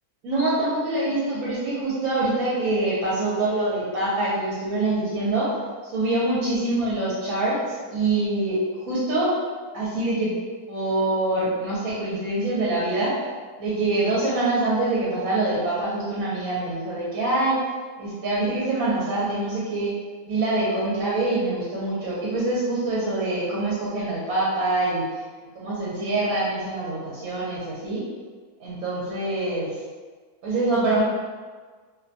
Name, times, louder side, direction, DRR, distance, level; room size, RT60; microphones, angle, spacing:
voice 1, 0.2-5.5 5.8-8.6 8.9-9.3 9.7-10.4 10.7-13.1 13.6-17.6 18.0-19.9 20.3-25.2 25.5-28.0 28.6-29.8 30.4-31.0, right 2 dB, 70° right, -7 dB, 1.0 m, -25 dB
2.5 x 2.2 x 2.6 m, 1.5 s
omnidirectional pair, 1.6 m